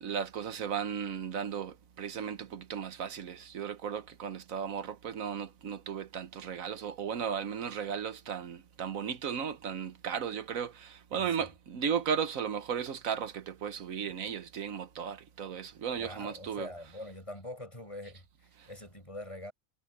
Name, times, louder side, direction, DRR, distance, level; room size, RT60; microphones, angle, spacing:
voice 1, 0.0-16.7, right 7 dB, 80° right, 1.4 m, -35 dB
voice 2, 11.1-11.5 16.0-19.5, left 1 dB, 25° left, 8.0 m, -44 dB
omnidirectional pair, 1.4 m